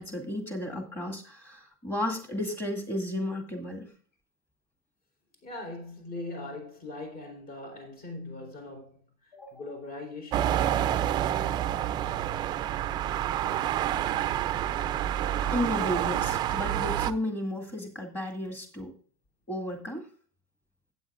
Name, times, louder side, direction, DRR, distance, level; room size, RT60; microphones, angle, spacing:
voice 1, 0.0-3.9 9.3-9.6 15.4-19.0 19.5-20.1, left 1 dB, 10° left, 2.2 m, -33 dB
voice 2, 5.4-10.8, left 2 dB, 40° left, 4.1 m, -41 dB
sound 1, 10.3-17.1, right 11 dB, 25° right, 0.4 m, -28 dB
14.5 x 8.8 x 2.4 m
supercardioid pair, 160°, 17 cm